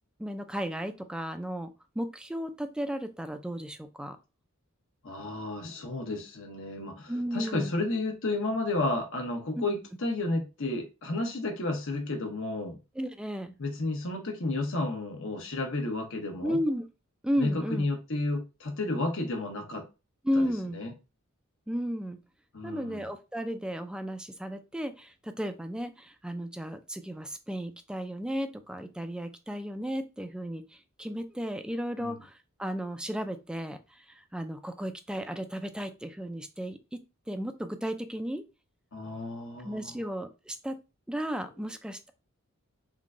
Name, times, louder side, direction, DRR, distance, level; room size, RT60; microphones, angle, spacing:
voice 1, 0.2-4.2 7.1-7.7 13.0-13.5 16.4-16.8 17.2-17.8 20.2-20.8 21.7-22.2 22.6-30.6 31.0-32.3 32.6-33.8 34.3-37.0 37.3-38.4 39.6-40.8 41.1-42.1, equal, 5° right, 0.3 m, -34 dB
voice 2, 5.0-12.8 13.6-16.6 17.4-19.8 20.3-20.9 22.5-23.1 32.0-32.2 38.9-40.0, left 2 dB, 65° left, 1.0 m, -32 dB
3.7 x 2.2 x 3.6 m
head